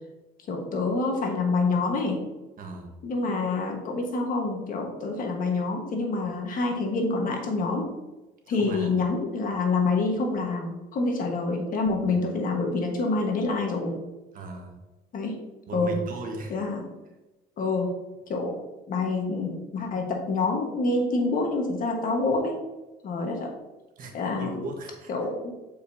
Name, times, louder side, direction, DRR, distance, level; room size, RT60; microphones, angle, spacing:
voice 1, 0.5-2.2 3.0-7.9 8.5-14.0 15.1-15.4 15.7-16.0 16.5-16.9 17.6-17.9 18.3-18.6 18.9-22.6 23.0-23.5 24.1-24.5 25.1-25.5, left 3 dB, 55° left, 2 dB, 1.4 m, -27 dB
voice 2, 2.6-2.9 8.5-8.9 12.0-12.2 14.3-14.8 15.7-16.6 24.0-25.1, right 2 dB, 55° right, 2 dB, 1.3 m, -37 dB
6.8 x 5.2 x 2.7 m, 1.1 s
cardioid pair, 110°, 17 cm